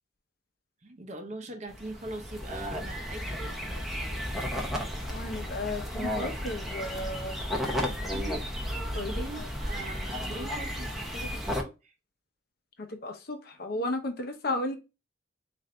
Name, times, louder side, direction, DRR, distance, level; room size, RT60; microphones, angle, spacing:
voice 1, 0.8-4.8 7.5-8.4 8.9-11.9, right 1 dB, 40° right, 0.7 m, -42 dB
sound 1, 1.7-11.6, equal, ahead, 0.6 m, -33 dB
voice 2, 5.1-7.7 8.9-9.5 12.8-14.8, left 2 dB, 55° left, 0.8 m, -34 dB
3.9 x 2.6 x 3.2 m
head